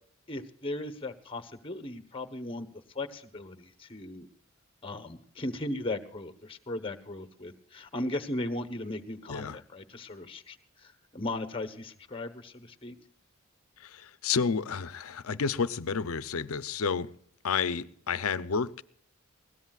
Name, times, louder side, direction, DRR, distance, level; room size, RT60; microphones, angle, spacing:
voice 1, 0.3-2.7 2.9-4.3 4.8-12.9, left 1 dB, 25° left, 9 dB, 1.1 m, -37 dB
voice 2, 9.3-9.6 13.8-17.1 17.4-18.8, left 5 dB, 85° left, 15 dB, 0.6 m, -30 dB
21.0 x 17.0 x 2.4 m, 0.65 s
head